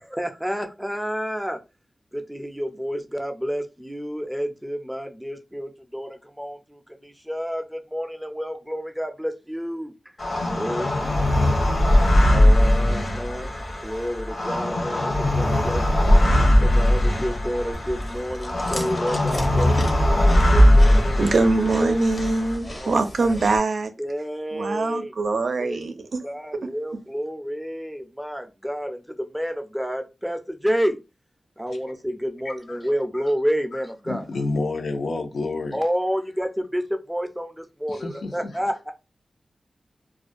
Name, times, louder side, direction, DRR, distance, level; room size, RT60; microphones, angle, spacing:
voice 1, 0.0-1.6 2.1-9.9 10.5-11.0 12.3-13.5 13.8-15.8 16.6-22.0 22.6-23.4 24.0-25.1 25.6-25.8 26.2-31.0 31.6-34.3 35.7-36.8 37.1-38.9, equal, ahead, 0.4 m, -29 dB
sound 1, 10.2-22.6, left 1 dB, 65° left, 0.9 m, -20 dB
Chewing mastication, 17.7-23.6, left 1 dB, 40° left, 0.6 m, -36 dB
voice 2, 21.2-23.9 24.5-25.9, right 3 dB, 75° right, 0.4 m, -23 dB
voice 3, 32.5-32.8 33.1-33.2 33.7-33.8 34.1-35.8 37.9-38.5, left 3 dB, 80° left, 0.5 m, -29 dB
2.4 x 2.1 x 2.5 m
wide cardioid pair, 105°, 0 cm